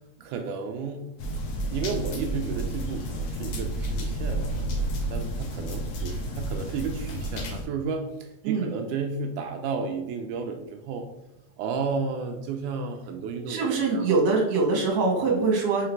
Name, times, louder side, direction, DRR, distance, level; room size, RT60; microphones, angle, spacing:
voice 1, 0.2-1.1 1.7-11.1 11.6-14.1, right 5 dB, 85° right, 4 dB, 1.8 m, -33 dB
sound 1, 1.2-7.6, right 1 dB, 70° left, 2.2 m, -31 dB
voice 2, 13.5-15.9, right 4 dB, 60° right, -1 dB, 2.3 m, -23 dB
5.7 x 3.8 x 4.5 m, 0.86 s
omnidirectional pair, 4.1 m